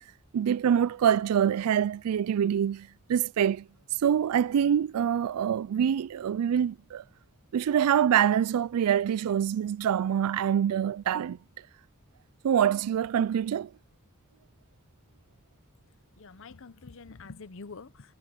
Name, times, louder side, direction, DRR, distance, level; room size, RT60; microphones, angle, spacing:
voice 1, 0.3-3.7 4.0-7.0 7.5-11.4 12.4-13.7, right 9 dB, 85° right, 0.3 m, -25 dB
voice 2, 16.2-18.1, left 4 dB, 60° left, 0.8 m, -46 dB
head